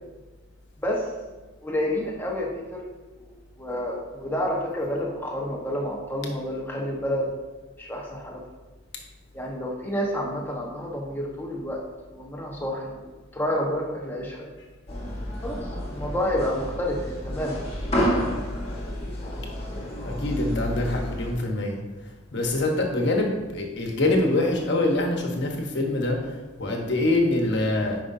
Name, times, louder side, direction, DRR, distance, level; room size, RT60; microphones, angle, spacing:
voice 1, 1.6-2.9 3.2-7.3 7.8-8.4 9.3-11.8 12.1-14.5 15.4-17.7, equal, 10° left, -2 dB, 1.1 m, -29 dB
sound 1, 14.9-21.3, equal, 30° left, 1.4 m, -30 dB
voice 2, 20.2-21.8 22.3-26.2 26.6-28.0, left 2 dB, 55° left, 1 dB, 1.1 m, -24 dB
9.5 x 5.1 x 2.7 m, 1.2 s
head